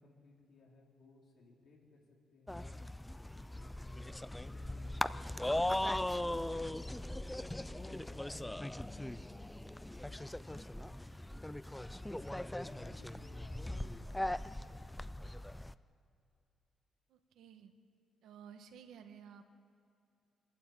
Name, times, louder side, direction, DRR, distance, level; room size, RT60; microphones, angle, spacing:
voice 1, 0.0-2.0 2.3-2.6 3.8-5.5 6.0-8.2 8.5-11.0 11.9-15.4, left 3 dB, 55° left, -2 dB, 4.3 m, -62 dB
sound 1, 2.5-15.7, left 1 dB, 5° left, 0.4 m, -39 dB
voice 2, 17.1-17.7 18.2-19.5, right 7 dB, 85° right, 7 dB, 1.5 m, -54 dB
26.0 x 12.5 x 8.5 m, 2.6 s
cardioid pair, 145°, 0 cm